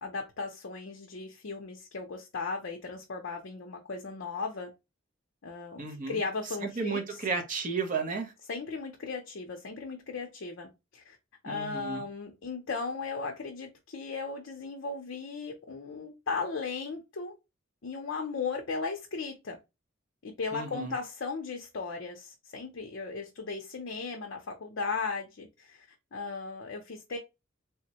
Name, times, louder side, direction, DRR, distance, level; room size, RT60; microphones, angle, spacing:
voice 1, 0.0-4.7 5.4-7.0 8.5-11.2 11.4-17.4 17.8-19.6 20.2-25.9 26.1-27.2, left 4 dB, 65° left, 0.5 m, -36 dB
voice 2, 5.8-6.2 6.6-8.3 11.5-12.0 20.5-20.9, right 4 dB, 40° right, 0.7 m, -33 dB
3.4 x 2.1 x 2.8 m
head